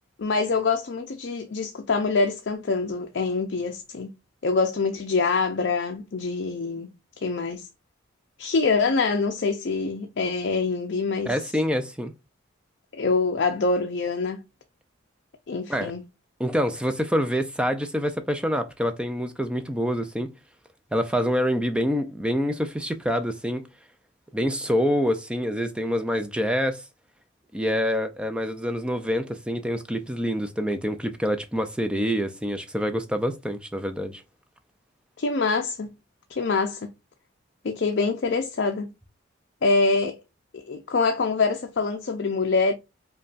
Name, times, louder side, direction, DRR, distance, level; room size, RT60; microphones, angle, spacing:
voice 1, 0.2-4.1 4.4-7.7 8.4-11.4 12.9-14.4 15.5-16.0 35.2-36.0 36.3-36.9 37.6-38.9 39.6-40.2 40.5-42.7, left 4 dB, 55° left, 0.5 m, -25 dB
voice 2, 11.3-12.1 15.7-15.9 16.4-20.3 20.9-23.6 24.3-26.8 27.5-34.2, equal, 5° right, 0.4 m, -26 dB
5.2 x 2.3 x 2.5 m
head